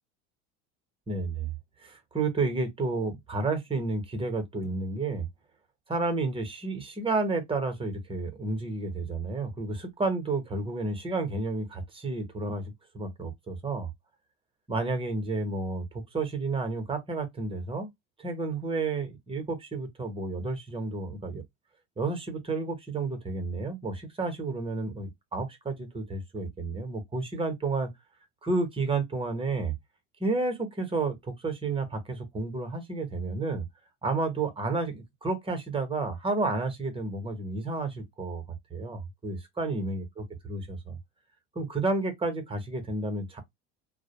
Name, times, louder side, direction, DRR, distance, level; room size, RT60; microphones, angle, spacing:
voice 1, 1.1-1.5 1.8-5.3 5.9-13.9 14.7-17.9 18.2-21.4 22.0-27.9 28.4-29.7 30.2-33.6 34.0-38.4 38.7-41.0 41.5-43.4, right 3 dB, 15° right, 1.0 m, -31 dB
2.2 x 2.2 x 2.9 m
supercardioid pair, 95°, 36 cm